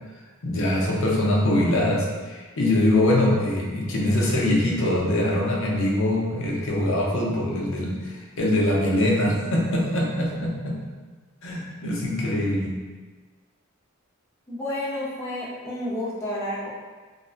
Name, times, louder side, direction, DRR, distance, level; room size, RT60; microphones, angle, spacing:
voice 1, 0.4-10.8 11.4-12.7, left 1 dB, 60° left, -3 dB, 0.5 m, -23 dB
voice 2, 14.5-16.7, left 1 dB, 15° left, -7 dB, 0.5 m, -30 dB
2.5 x 2.1 x 2.3 m, 1.3 s
head